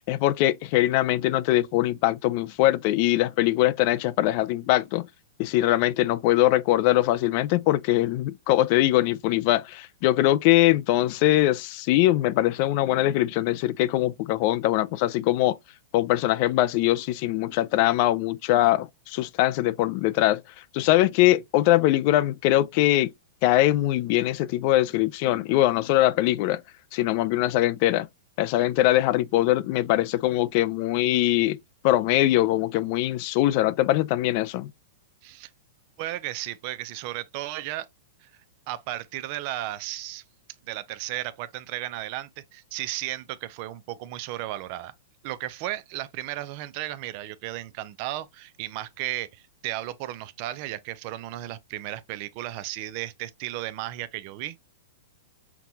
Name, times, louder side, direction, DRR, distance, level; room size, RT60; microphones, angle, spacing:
voice 1, 0.0-5.1 5.4-15.6 15.9-20.4 20.7-23.1 23.4-26.6 26.9-28.1 28.4-31.6 31.8-34.7, left 15 dB, 50° left, 0.3 m, -22 dB
voice 2, 36.0-37.9 38.7-40.2 40.7-44.9 45.2-54.7, right 15 dB, 50° right, 0.5 m, -34 dB
5.8 x 2.2 x 2.7 m
hypercardioid pair, 130°, 0 cm